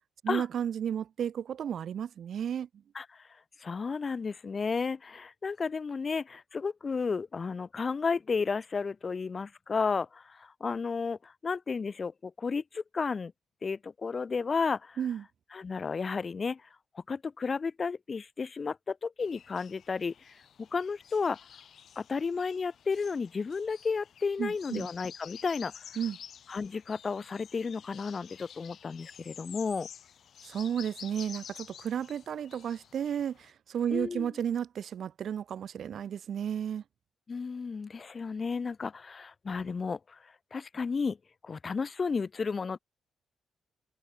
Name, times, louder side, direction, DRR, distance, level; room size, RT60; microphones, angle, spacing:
voice 1, 0.2-2.7 15.0-15.2 24.4-24.9 26.0-26.2 30.4-36.8, right 8 dB, 65° right, 0.8 m, -33 dB
voice 2, 3.6-13.3 13.6-15.0 15.5-16.6 16.9-20.1 20.6-21.4 22.0-25.7 26.5-29.9 33.9-34.3 37.3-40.2 40.5-41.2 41.4-42.8, left 5 dB, 45° left, 0.7 m, -33 dB
sound 1, 19.2-33.5, left 8 dB, 65° left, 3.7 m, -50 dB
supercardioid pair, 60°, 0 cm